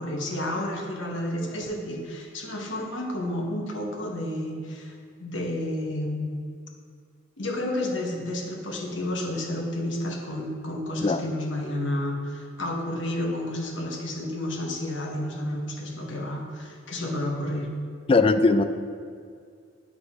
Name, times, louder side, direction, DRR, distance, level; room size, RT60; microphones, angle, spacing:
voice 1, 0.0-6.4 7.4-17.7, left 1 dB, 65° left, 1 dB, 1.2 m, -31 dB
voice 2, 18.1-18.6, left 3 dB, 30° left, 9 dB, 0.3 m, -19 dB
10.0 x 4.8 x 4.2 m, 2.2 s
head